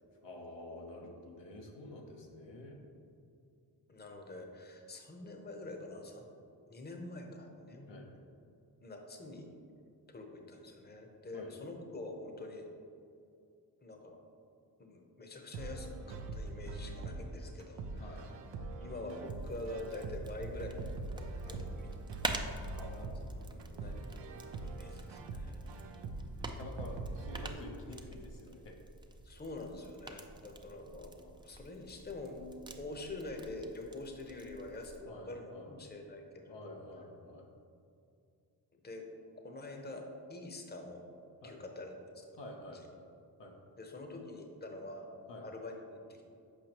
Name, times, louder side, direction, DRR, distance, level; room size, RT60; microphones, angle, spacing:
voice 1, 0.2-2.8 7.9-8.1 11.3-11.5 18.0-18.3 21.4-21.6 22.7-24.3 25.8-25.9 26.4-28.8 30.6-30.8 35.1-35.7 36.5-37.5 41.4-41.6 42.4-42.8 43.4-43.5 45.3-45.4, left 1 dB, 80° left, 0 dB, 0.9 m, -49 dB
voice 2, 3.9-6.3 6.7-8.1 8.8-9.4 10.1-12.7 13.8-14.2 14.8-18.2 18.8-21.9 23.3-24.0 24.6-25.6 29.2-32.5 32.8-36.8 38.8-39.1 39.4-41.0 41.4-41.9 43.8-45.1 45.4-46.2, left 2 dB, 25° left, 3 dB, 0.8 m, -46 dB
sound 1, 15.5-27.5, right 3 dB, 80° right, 0.6 m, -43 dB
sound 2, 19.2-35.0, right 2 dB, 10° right, 0.4 m, -47 dB
6.8 x 5.0 x 3.0 m, 2.5 s
cardioid pair, 55°, 43 cm